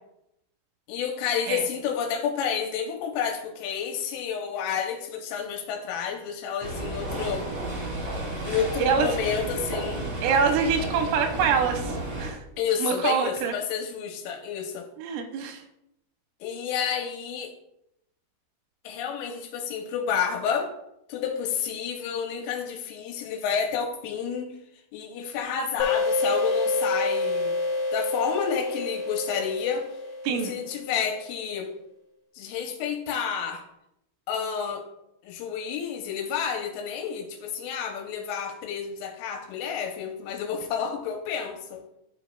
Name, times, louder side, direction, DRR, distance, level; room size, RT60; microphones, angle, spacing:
voice 1, 0.9-7.5 8.4-10.1 12.6-14.9 16.4-17.5 18.8-20.7 21.1-24.5 24.9-27.5 27.9-29.9 30.3-31.7 32.4-33.6 34.3-34.8 35.2-41.8, left 7 dB, 85° left, 3 dB, 3.3 m, -30 dB
sound 1, 6.6-12.3, right 2 dB, 55° right, 1.5 m, -32 dB
voice 2, 8.8-9.4 10.2-12.4 12.8-13.5 15.0-15.6 30.2-30.5, right 6 dB, 90° right, 5 dB, 3.2 m, -25 dB
sound 2, 25.8-31.1, left 3 dB, 50° left, 2.5 m, -28 dB
12.5 x 5.2 x 2.3 m, 0.82 s
omnidirectional pair, 5.8 m